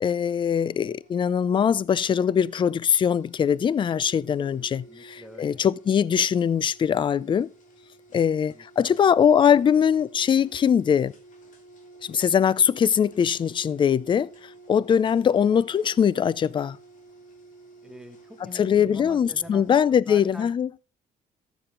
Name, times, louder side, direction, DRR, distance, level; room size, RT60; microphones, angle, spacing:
voice 1, 0.0-7.5 8.1-11.1 12.0-14.3 14.7-16.8 18.4-20.7, left 8 dB, 30° left, 0.4 m, -22 dB
sound 1, 0.6-19.8, right 2 dB, 50° left, 2.7 m, -51 dB
voice 2, 4.9-5.7 8.5-9.0 17.8-20.5, equal, 5° right, 1.3 m, -45 dB
13.5 x 7.0 x 3.8 m
cardioid pair, 110°, 17 cm